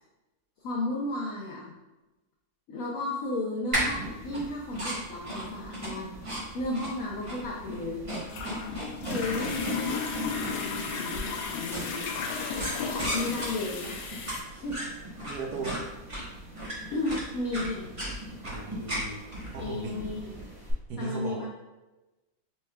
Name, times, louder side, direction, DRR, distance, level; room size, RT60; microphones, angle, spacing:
voice 1, 0.6-1.7 2.7-6.1 6.5-8.0 9.1-12.2 12.8-13.9 14.5-14.9 16.9-17.9 19.6-20.3 21.0-21.5, left 2 dB, 65° left, -5 dB, 0.8 m, -34 dB
sound 1, 3.7-20.7, right 1 dB, 30° right, 0.6 m, -37 dB
sound 2, 7.4-14.4, left 5 dB, 85° left, 1.4 m, -34 dB
voice 2, 15.2-15.8 18.4-19.2 19.5-20.1 20.9-21.5, right 4 dB, 70° right, 0 dB, 0.9 m, -36 dB
5.8 x 3.2 x 2.3 m, 1.1 s
omnidirectional pair, 2.2 m